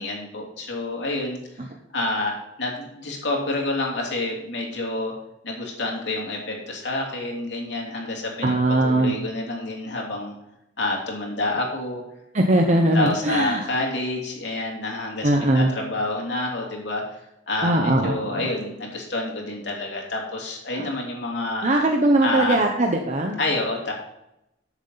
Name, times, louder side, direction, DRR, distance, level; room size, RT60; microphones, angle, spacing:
voice 1, 0.0-1.7 1.9-5.1 5.4-10.4 10.8-12.0 12.7-21.7 22.2-22.6 23.4-23.9, left 2 dB, 70° left, -1 dB, 3.1 m, -28 dB
voice 2, 8.4-9.1 12.3-13.6 15.2-15.7 17.6-18.5 20.8-20.9 21.6-23.4, right 1 dB, 40° right, 2 dB, 1.0 m, -20 dB
13.0 x 7.3 x 4.1 m, 0.85 s
head